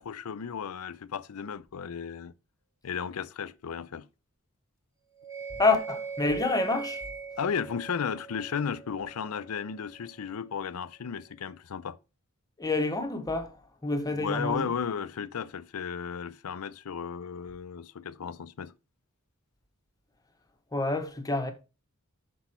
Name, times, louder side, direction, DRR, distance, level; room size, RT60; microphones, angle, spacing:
voice 1, 0.0-2.3 2.8-4.1 7.4-12.0 14.1-18.7, left 6 dB, 85° left, 0.5 m, -34 dB
sound 1, 5.2-10.3, right 5 dB, 15° right, 1.5 m, -41 dB
voice 2, 5.6-7.0 12.6-13.5 13.8-14.7 20.7-21.5, left 3 dB, 15° left, 1.0 m, -27 dB
6.1 x 5.5 x 4.2 m
head